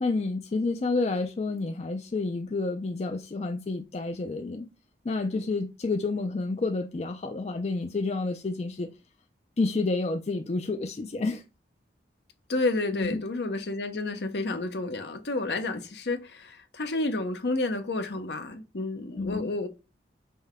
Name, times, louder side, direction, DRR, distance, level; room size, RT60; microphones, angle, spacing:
voice 1, 0.0-4.7 5.0-8.9 9.6-11.4 12.9-13.2 19.2-19.5, left 3 dB, 35° left, 0.4 m, -29 dB
voice 2, 12.5-19.7, left 2 dB, 65° left, 0.7 m, -30 dB
5.3 x 2.2 x 3.4 m
head